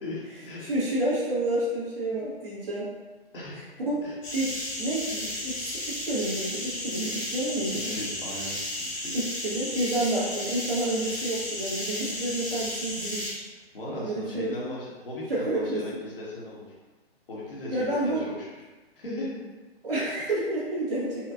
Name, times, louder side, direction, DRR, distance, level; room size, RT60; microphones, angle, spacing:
voice 1, 0.0-0.8 3.3-3.7 4.0-4.1 7.7-8.5 8.9-9.2 13.7-16.7 17.3-18.7 19.0-19.4, left 1 dB, 60° left, -6 dB, 1.3 m, -37 dB
voice 2, 0.6-2.9 3.9-4.0 4.3-8.0 9.1-13.5 13.9-14.5 15.3-15.8 17.7-18.2 19.8-21.3, right 1 dB, 60° right, -7 dB, 1.5 m, -29 dB
sound 1, 4.2-13.3, left 1 dB, 20° left, 1.2 m, -34 dB
4.4 x 2.4 x 2.5 m, 1.2 s
figure-of-eight pair, 130°, 31 cm